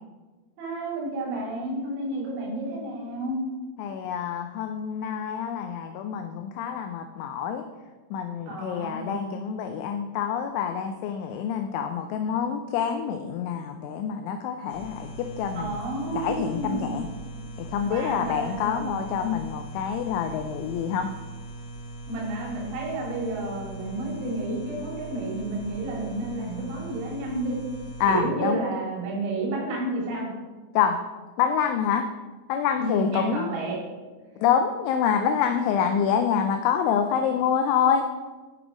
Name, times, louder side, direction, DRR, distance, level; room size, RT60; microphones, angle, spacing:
voice 1, 0.6-3.4 8.5-9.3 15.6-17.1 17.9-18.9 22.1-27.5 28.1-30.3 32.8-33.8, right 2 dB, 85° right, -4 dB, 5.5 m, -31 dB
voice 2, 3.8-7.6 8.1-15.8 16.2-17.1 17.6-21.1 28.0-28.6 30.8-31.0 31.4-32.1 32.5-33.6 34.4-38.0, left 7 dB, 90° left, 6 dB, 2.6 m, -26 dB
sound 1, 14.7-28.2, right 2 dB, 65° left, 2.7 m, -40 dB
10.0 x 6.1 x 4.9 m, 1.3 s
omnidirectional pair, 6.0 m